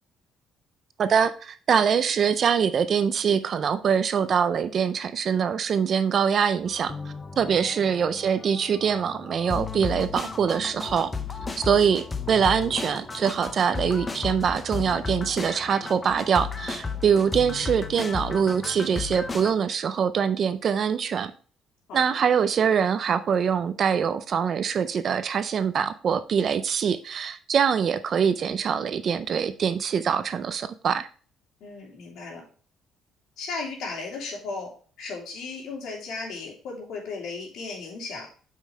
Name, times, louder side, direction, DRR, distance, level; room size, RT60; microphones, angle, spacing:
voice 1, 1.0-6.9 7.4-11.1 11.6-21.3 21.9-31.1, right 7 dB, 35° right, 12 dB, 0.4 m, -24 dB
sound 1, 6.7-19.5, left 5 dB, 15° left, 0.6 m, -34 dB
voice 2, 31.6-32.4 33.4-38.3, left 4 dB, 70° left, -1 dB, 3.0 m, -36 dB
8.3 x 5.5 x 3.2 m, 0.40 s
cardioid pair, 175°, 0 cm